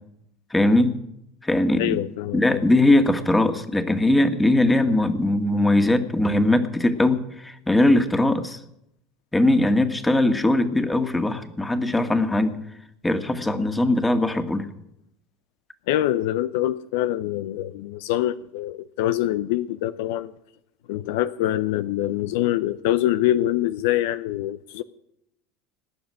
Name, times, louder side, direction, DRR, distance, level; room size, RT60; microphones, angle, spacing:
voice 1, 0.5-1.0 1.4-2.0 2.3-8.6 9.3-12.6 13.0-14.7, left 1 dB, 10° left, 8 dB, 1.9 m, -20 dB
voice 2, 1.8-2.6 15.9-20.3 20.9-24.8, left 13 dB, 65° left, 14 dB, 0.6 m, -24 dB
19.0 x 7.1 x 10.0 m, 0.81 s
hypercardioid pair, 75°, 0 cm